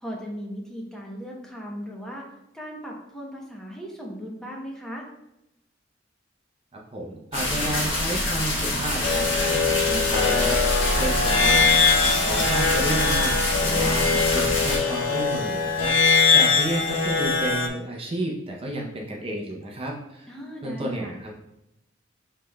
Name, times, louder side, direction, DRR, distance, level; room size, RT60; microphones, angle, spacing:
voice 1, 0.0-2.2 2.5-5.1 20.3-21.1, equal, 5° left, -2 dB, 0.8 m, -37 dB
voice 2, 6.9-20.3 20.6-21.3, right 1 dB, 30° right, -1 dB, 0.6 m, -32 dB
sound 1, 7.3-14.8, left 1 dB, 85° left, 1.4 m, -25 dB
sound 2, 9.0-17.7, left 5 dB, 70° left, 0.5 m, -22 dB
7.4 x 3.2 x 2.2 m, 0.88 s
head